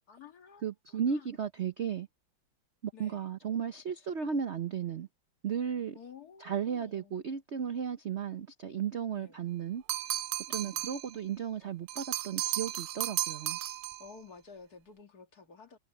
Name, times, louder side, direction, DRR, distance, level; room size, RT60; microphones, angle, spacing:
voice 1, 0.1-1.4 2.9-3.3 5.9-7.1 9.1-9.4 10.6-10.9 14.0-15.8, left 5 dB, 50° left, 2.3 m, -52 dB
voice 2, 0.6-2.1 2.8-5.1 5.4-6.0 6.4-9.8 10.5-13.6, right 7 dB, 55° right, 0.7 m, -35 dB
sound 1, 9.9-11.1 11.9-14.1, right 15 dB, 85° right, 1.5 m, -34 dB
omnidirectional pair, 2.3 m